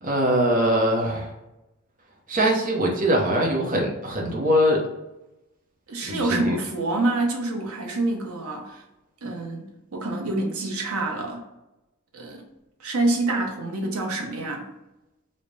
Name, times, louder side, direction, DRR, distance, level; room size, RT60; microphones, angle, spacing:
voice 1, 0.0-1.3 2.3-4.9 6.0-6.6, equal, 40° right, -1 dB, 0.7 m, -22 dB
voice 2, 5.9-8.8 9.2-11.4 12.1-12.5 12.8-14.7, right 2 dB, 85° right, 2 dB, 0.8 m, -27 dB
3.2 x 2.1 x 3.8 m, 0.95 s
head